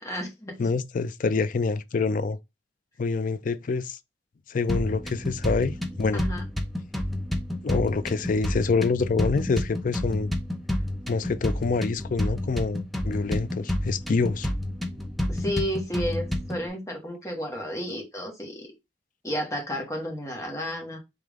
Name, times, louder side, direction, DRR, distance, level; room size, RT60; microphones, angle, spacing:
voice 1, 0.0-0.7 6.1-6.4 15.3-18.7 19.2-21.0, equal, 15° left, 1.4 m, -32 dB
voice 2, 0.6-2.4 3.0-4.0 4.5-6.2 7.6-10.3 11.1-14.5, left 4 dB, 45° left, 0.4 m, -26 dB
sound 1, 4.7-16.7, left 1 dB, ahead, 0.6 m, -30 dB
3.5 x 3.5 x 3.5 m
head